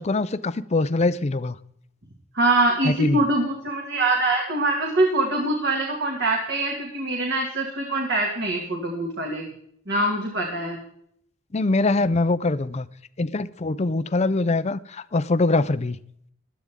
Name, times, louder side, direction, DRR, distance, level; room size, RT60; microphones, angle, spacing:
voice 1, 0.0-1.6 2.8-3.2 11.5-12.9 13.2-16.0, left 2 dB, 30° left, 0.5 m, -23 dB
voice 2, 2.3-9.5 9.9-10.8, right 2 dB, 50° right, 2.3 m, -23 dB
15.5 x 12.0 x 3.7 m
head